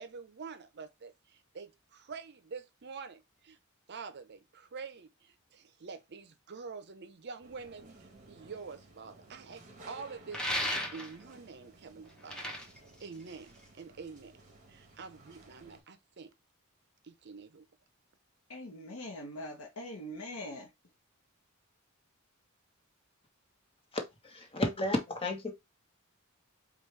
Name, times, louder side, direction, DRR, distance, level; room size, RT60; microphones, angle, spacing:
voice 1, 0.0-3.6 3.9-12.4 13.0-14.4 14.7-16.3 17.0-17.7, right 5 dB, 55° right, 0.6 m, -47 dB
sound 1, 7.4-15.8, right 2 dB, 35° right, 1.2 m, -57 dB
sound 2, 10.3-11.3 12.1-13.8, equal, 5° left, 0.8 m, -35 dB
voice 2, 18.5-20.7, left 1 dB, 90° left, 0.9 m, -42 dB
voice 3, 23.9-25.5, left 1 dB, 25° left, 1.0 m, -33 dB
5.0 x 2.4 x 3.1 m
head